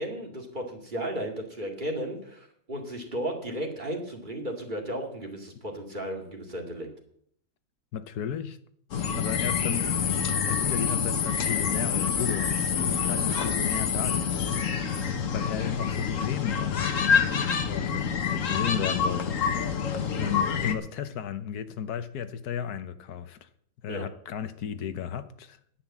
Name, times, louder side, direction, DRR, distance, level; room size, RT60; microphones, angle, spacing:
voice 1, 0.0-6.9 23.9-24.0, right 1 dB, 30° right, 2.4 m, -34 dB
voice 2, 7.9-8.6 9.1-9.9 10.4-14.7 15.3-17.0 17.7-19.9 20.2-23.5 23.8-25.6, left 9 dB, 90° left, 1.4 m, -34 dB
sound 1, 8.9-20.7, left 7 dB, 60° left, 1.5 m, -27 dB
9.9 x 9.9 x 7.2 m
omnidirectional pair, 1.6 m